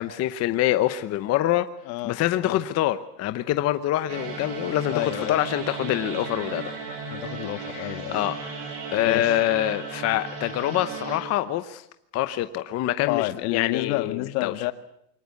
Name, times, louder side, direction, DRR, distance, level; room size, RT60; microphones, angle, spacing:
voice 1, 0.0-1.7 2.0-6.6 7.5-11.8 12.1-14.7, left 14 dB, 30° left, 11 dB, 0.9 m, -26 dB
voice 2, 1.9-2.6 4.9-5.4 7.1-8.2 9.0-9.3 13.1-14.7, left 17 dB, 65° left, 11 dB, 1.7 m, -29 dB
sound 1, 4.1-11.2, right 5 dB, 80° right, 7.6 m, -35 dB
23.5 x 19.0 x 8.5 m, 0.75 s
supercardioid pair, 155°, 49 cm